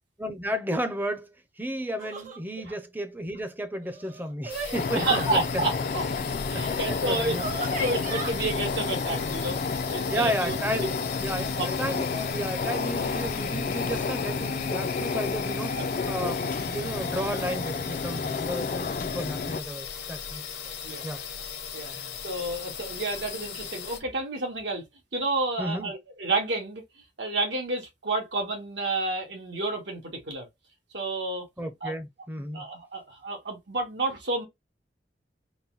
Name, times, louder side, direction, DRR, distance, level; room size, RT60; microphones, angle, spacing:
voice 1, 0.2-5.7 6.5-7.5 10.1-20.4 21.0-21.2 21.9-22.1 25.6-25.9 31.6-32.7, equal, 10° right, 0.6 m, -33 dB
sound 1, 2.0-2.4 3.8-5.4 6.9-7.0 7.3-8.3, right 2 dB, 45° right, 0.9 m, -35 dB
sound 2, 4.5-24.0, left 7 dB, 75° left, 0.9 m, -38 dB
sound 3, 4.7-19.6, left 4 dB, 50° left, 0.4 m, -31 dB
voice 2, 4.9-6.0 6.5-7.4 7.8-9.6 9.9-10.9 11.4-11.7 15.7-16.1 20.8-21.0 21.7-21.9 22.2-24.8 25.1-26.8 27.2-30.5 30.9-31.4 31.8-31.9 32.5-34.5, right 2 dB, 85° right, 1.5 m, -30 dB
4.0 x 2.1 x 3.9 m
head